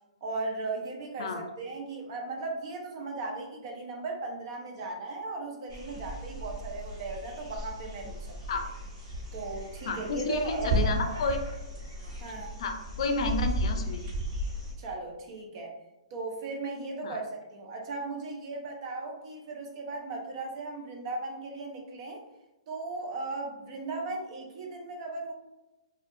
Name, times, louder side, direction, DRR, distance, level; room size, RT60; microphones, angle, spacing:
voice 1, 0.2-8.4 9.3-11.1 12.2-12.5 14.8-15.7 16.1-22.2 22.7-25.3, right 3 dB, 50° right, 1 dB, 0.7 m, -37 dB
sound 1, 5.7-14.7, equal, 30° right, 1.4 m, -34 dB
voice 2, 9.9-11.4 12.6-14.0 17.0-17.2, left 4 dB, 60° left, 5 dB, 0.4 m, -31 dB
2.4 x 2.3 x 2.6 m, 1.0 s
hypercardioid pair, 125°, 3 cm